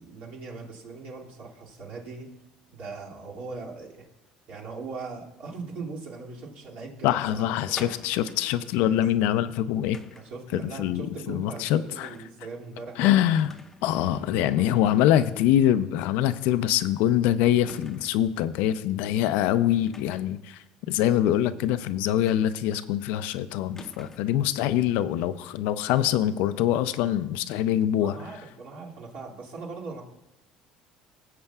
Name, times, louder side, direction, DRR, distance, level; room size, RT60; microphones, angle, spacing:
voice 1, 0.0-2.3 2.7-4.0 4.5-7.2 7.7-7.9 8.8-9.2 10.1-13.1 14.0-15.1 28.0-30.0, right 4 dB, 60° right, -3 dB, 2.5 m, -40 dB
voice 2, 7.0-10.0 10.5-12.1 13.0-13.5 13.8-20.6 20.9-28.2, left 11 dB, 75° left, 12 dB, 0.5 m, -24 dB
sound 1, 7.8-8.6 9.9-10.4 12.0-12.4 12.7-12.8 13.4-13.9 14.3-14.4 16.0-16.2 16.5-16.6 17.7-18.3 19.9-20.4 22.3-22.8 23.8-24.4, left 2 dB, 15° left, 0.7 m, -47 dB
17.0 x 7.6 x 2.4 m, 0.95 s
supercardioid pair, 105°, 3 cm